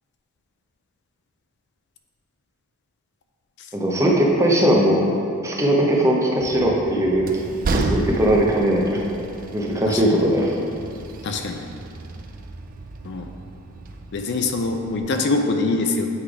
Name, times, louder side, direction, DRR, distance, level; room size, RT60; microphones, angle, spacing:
voice 1, 3.7-5.1 5.4-7.2 7.7-9.0 9.5-10.6, right 1 dB, 15° right, -3 dB, 0.7 m, -19 dB
Train, 6.4-15.0, right 2 dB, 40° right, 0.4 m, -32 dB
voice 2, 9.9-10.2 11.2-11.6 13.0-13.3 14.1-16.1, left 3 dB, 55° left, 4 dB, 0.4 m, -24 dB
8.0 x 3.4 x 4.8 m, 2.6 s
head